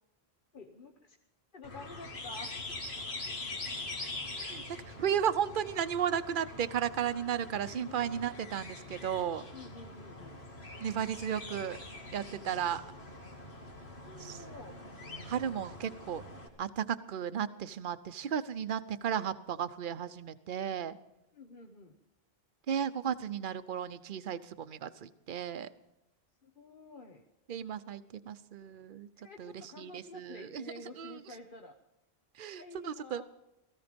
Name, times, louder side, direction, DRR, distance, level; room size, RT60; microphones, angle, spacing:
voice 1, 0.5-1.2 1.5-2.8 7.7-8.1 9.5-10.4 13.8-14.8 21.3-22.0 26.4-27.2 29.1-31.8 32.5-33.2, left 2 dB, 55° left, 4 dB, 1.2 m, -50 dB
sound 1, 1.6-16.5, left 2 dB, 70° left, 2.5 m, -44 dB
voice 2, 4.4-9.4 10.8-11.8 12.1-12.8 14.2-14.4 15.2-16.2 16.6-21.0 22.7-25.7 27.5-29.1 29.4-30.6 31.0-31.2 32.4-33.2, right 8 dB, 55° right, 13 dB, 0.9 m, -34 dB
17.5 x 15.0 x 5.2 m, 0.87 s
omnidirectional pair, 1.1 m